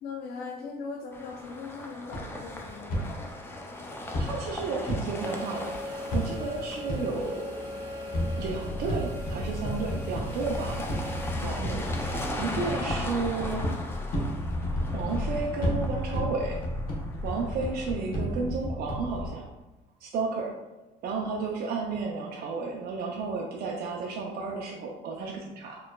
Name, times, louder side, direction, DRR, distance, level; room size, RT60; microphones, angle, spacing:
voice 1, 0.0-3.1, left 4 dB, 75° left, 0 dB, 0.5 m, -39 dB
sound 1, 1.1-18.1, left 1 dB, 15° left, 0.5 m, -39 dB
sound 2, 2.1-3.0 4.1-5.0 6.1-6.6 6.9-7.0 8.1-19.3, equal, 60° left, 1.0 m, -32 dB
voice 2, 4.2-7.6 8.4-10.8 11.4-13.7 14.9-16.6 17.0-19.5 20.0-20.5 21.0-25.8, right 4 dB, 65° right, -1 dB, 0.5 m, -33 dB
sound 3, 5.2-11.3, left 1 dB, 25° right, 1.1 m, -40 dB
4.3 x 3.1 x 2.2 m, 1.1 s
cardioid pair, 110°, 17 cm